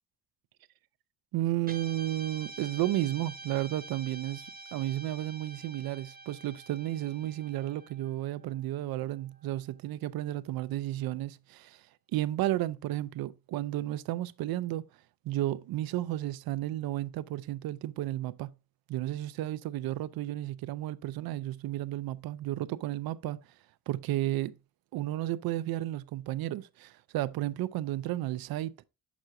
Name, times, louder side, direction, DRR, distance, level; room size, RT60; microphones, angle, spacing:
voice 1, 1.3-11.8 12.1-14.8 15.2-18.5 18.9-23.4 23.9-24.5 24.9-28.7, right 14 dB, 90° right, 0.5 m, -33 dB
Guitar, 1.6-10.1, right 3 dB, 25° right, 0.8 m, -48 dB
6.6 x 6.1 x 2.5 m
cardioid pair, 145°, 35 cm